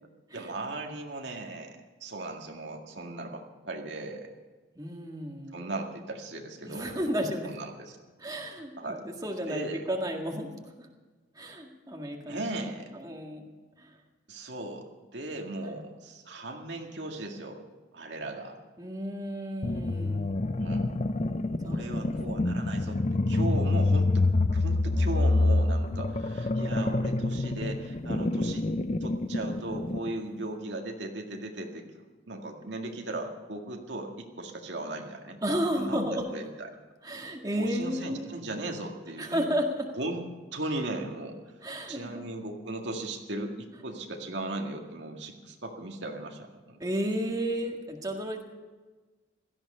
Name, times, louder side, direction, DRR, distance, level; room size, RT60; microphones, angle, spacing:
voice 1, 0.3-4.3 5.5-6.9 7.4-8.0 8.8-9.0 9.5-9.8 12.3-12.9 14.3-17.6 17.9-18.6 20.5-20.9 21.6-28.7 29.0-31.9 32.3-35.4 35.8-36.7 37.6-39.5 40.0-40.3 40.5-41.4 41.9-46.8, right 2 dB, 70° right, 2 dB, 2.0 m, -37 dB
voice 2, 4.8-5.6 6.7-7.5 8.2-10.5 10.8-10.9 11.4-13.4 13.8-13.9 15.6-15.8 18.8-20.4 21.6-22.5 35.4-36.2 37.0-38.3 39.2-39.9 41.6-42.2 46.8-48.4, equal, 20° right, 1 dB, 1.9 m, -33 dB
sound 1, 19.6-30.1, left 2 dB, 35° left, 0.6 m, -27 dB
17.0 x 14.0 x 5.5 m, 1.3 s
head